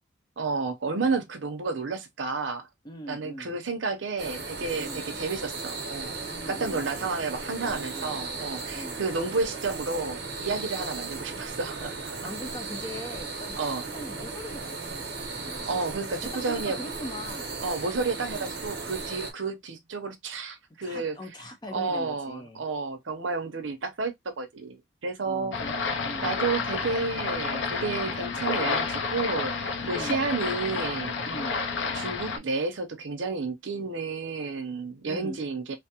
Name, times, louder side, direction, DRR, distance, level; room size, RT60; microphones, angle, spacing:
voice 1, 0.4-2.7 3.1-6.1 6.5-12.2 13.6-13.8 15.6-16.8 17.6-21.2 21.7-25.6 26.2-31.2 31.9-35.8, right 4 dB, 75° right, 0.7 m, -31 dB
voice 2, 2.8-3.6 4.8-5.0 6.3-7.1 7.6-8.1 8.7-9.0 12.2-13.6 13.9-15.8 16.5-17.5 18.3-18.5 20.8-22.6 25.2-25.7 26.0-26.3 29.8-30.1 31.2-31.6 35.0-35.4, equal, 20° left, 0.6 m, -41 dB
sound 1, 4.2-19.3, right 3 dB, 55° right, 1.0 m, -36 dB
sound 2, 25.5-32.4, left 4 dB, 70° left, 0.5 m, -30 dB
3.4 x 2.0 x 2.8 m
head